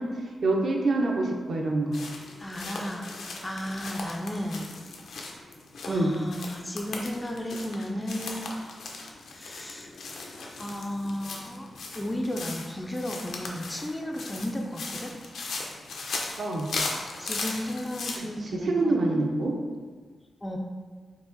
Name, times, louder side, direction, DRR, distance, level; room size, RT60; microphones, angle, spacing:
voice 1, 0.0-2.0 5.9-6.1 16.4-16.7 18.4-19.6, right 2 dB, 55° right, 1 dB, 0.6 m, -26 dB
sound 1, 1.9-18.2, left 3 dB, 80° left, 0.6 m, -38 dB
voice 2, 2.4-3.1 3.4-4.7 5.8-8.5 9.3-9.9 10.6-11.7 11.9-15.1 17.2-19.0 20.4-20.6, equal, 10° left, 1 dB, 0.4 m, -34 dB
4.7 x 2.8 x 3.9 m, 1.5 s
wide cardioid pair, 160°, 0 cm